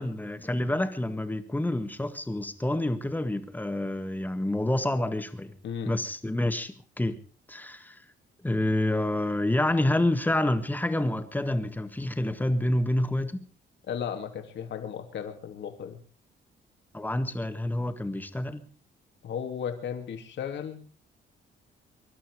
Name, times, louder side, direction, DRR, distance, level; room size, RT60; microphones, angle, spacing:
voice 1, 0.0-5.5 5.8-7.2 7.5-8.0 8.4-13.5 16.9-18.7, left 1 dB, 10° left, 1.8 m, -28 dB
voice 2, 13.9-16.0 19.2-20.9, left 8 dB, 70° left, 2.8 m, -35 dB
24.0 x 12.0 x 4.9 m
cardioid pair, 125°, 19 cm